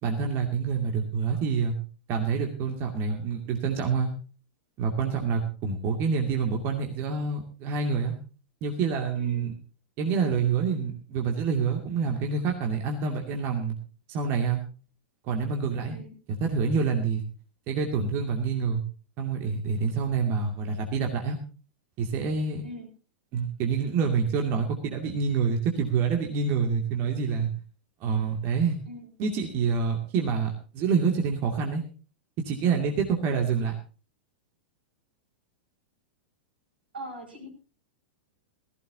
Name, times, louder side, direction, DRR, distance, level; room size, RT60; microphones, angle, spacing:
voice 1, 0.0-1.7 2.1-4.1 4.8-8.1 8.6-9.5 10.0-13.7 14.1-14.6 15.3-16.0 16.4-17.2 17.7-18.8 19.2-21.4 22.0-22.6 23.3-27.5 28.0-28.8 29.2-31.8 32.5-33.7, right 5 dB, 45° right, 2 dB, 2.5 m, -27 dB
voice 2, 9.1-9.5 15.8-16.1 22.6-22.9 28.9-29.1 36.9-37.5, equal, 85° right, 2 dB, 6.5 m, -42 dB
18.0 x 15.5 x 2.8 m, 0.36 s
figure-of-eight pair, 100°, 5 cm